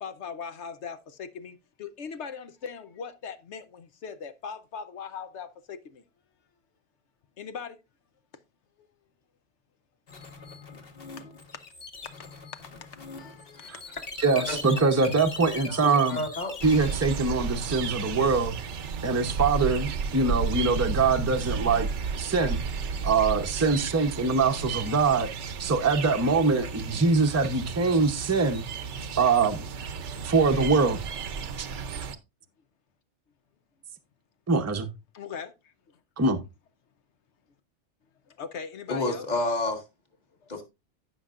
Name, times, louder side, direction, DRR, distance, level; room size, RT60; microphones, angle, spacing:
voice 1, 0.0-6.0 7.4-7.8 12.2-12.3 13.1-13.8 14.4-14.8 15.4-16.0 24.5-24.7 30.4-30.7 35.1-35.5 38.3-39.3, left 6 dB, 70° left, 1.0 m, -40 dB
sound 1, 10.1-17.1, left 4 dB, 55° left, 1.4 m, -41 dB
voice 2, 14.2-16.2 16.6-18.6 19.0-21.9 22.2-22.6 23.0-25.3 25.6-28.6 29.2-29.6 30.2-31.0 31.6-31.7 34.5-34.9 36.2-36.4, right 4 dB, 15° right, 0.6 m, -23 dB
voice 3, 15.8-16.5 18.2-18.4 38.9-39.8 40.5-40.6, left 2 dB, 35° left, 1.8 m, -30 dB
sound 2, 16.6-32.2, right 5 dB, 70° right, 1.1 m, -33 dB
15.0 x 5.6 x 2.4 m
omnidirectional pair, 1.2 m